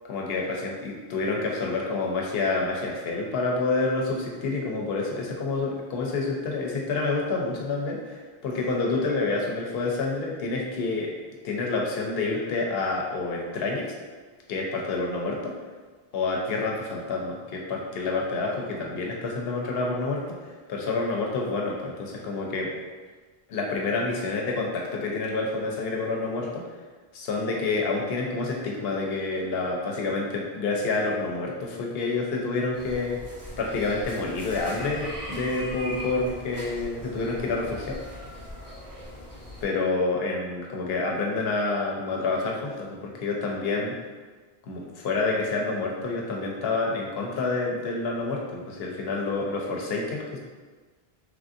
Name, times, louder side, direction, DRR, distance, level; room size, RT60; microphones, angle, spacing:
voice 1, 0.0-11.1 11.4-13.9 14.5-15.5 16.1-22.7 23.5-26.6 27.1-33.2 33.6-38.0 39.6-43.9 44.6-50.4, left 3 dB, 75° left, -1 dB, 0.8 m, -28 dB
sound 1, 32.7-39.7, equal, 70° right, 1.1 m, -40 dB
3.1 x 2.6 x 2.4 m, 1.4 s
omnidirectional pair, 1.0 m